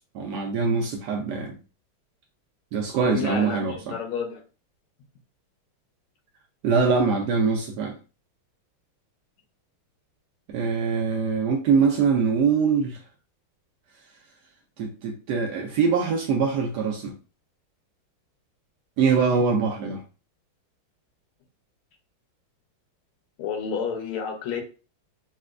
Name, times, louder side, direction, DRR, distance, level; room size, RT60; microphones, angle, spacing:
voice 1, 0.0-1.6 2.7-4.0 6.6-8.0 10.5-13.0 14.8-17.2 19.0-20.0, right 5 dB, 85° right, 0.9 m, -23 dB
voice 2, 3.1-4.4 23.4-24.6, left 6 dB, 90° left, 1.7 m, -30 dB
4.1 x 2.2 x 2.3 m
omnidirectional pair, 2.3 m